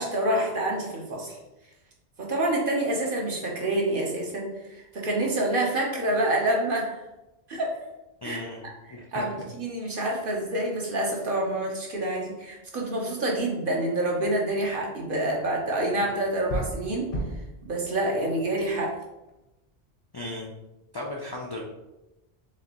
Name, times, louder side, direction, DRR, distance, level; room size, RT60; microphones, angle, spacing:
voice 1, 0.0-1.4 2.2-7.0 7.5-7.8 8.2-8.4 8.9-17.1 17.6-18.9, right 1 dB, 55° right, -2 dB, 1.0 m, -27 dB
voice 2, 8.2-8.6 8.9-9.2 20.1-20.5 20.9-21.6, left 2 dB, 40° left, -2 dB, 0.3 m, -35 dB
sound 1, 14.6-19.4, right 1 dB, 75° left, 1.1 m, -38 dB
4.6 x 3.0 x 2.9 m, 0.99 s
omnidirectional pair, 1.1 m